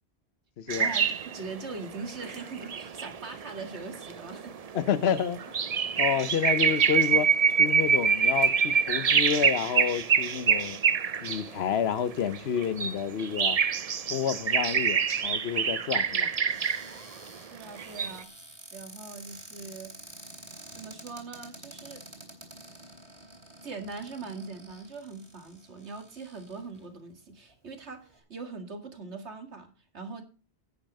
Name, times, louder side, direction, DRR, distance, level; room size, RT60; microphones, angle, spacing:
voice 1, 0.6-0.9 4.7-5.4 6.0-7.3 7.6-10.8 11.2-13.6 14.1-16.3, left 8 dB, 70° left, 1.0 m, -29 dB
sound 1, 0.7-11.5 12.1-16.9 17.8-18.2, right 6 dB, 40° right, 0.6 m, -26 dB
voice 2, 1.3-4.6 17.5-18.3 18.7-19.9 20.7-22.0 23.6-30.2, right 4 dB, 85° right, 2.3 m, -41 dB
Cupboard open or close, 16.5-26.8 27.5-27.6 27.8-28.2, right 1 dB, 25° right, 3.0 m, -49 dB
10.5 x 9.1 x 5.3 m
omnidirectional pair, 1.1 m